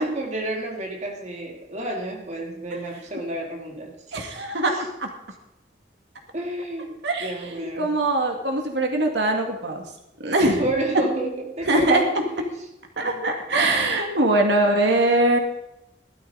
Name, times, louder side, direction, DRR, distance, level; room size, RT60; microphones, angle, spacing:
voice 1, 0.0-3.9 4.7-4.8 6.3-8.0 10.4-12.1 12.4-12.5 13.0-13.2, right 1 dB, 40° right, 0 dB, 2.0 m, -30 dB
voice 2, 4.1-4.7 5.0-5.1 7.0-9.8 10.2-10.6 11.6-12.0 13.0-15.4, right 2 dB, 80° right, 2 dB, 2.1 m, -22 dB
16.0 x 12.5 x 4.0 m, 0.86 s
head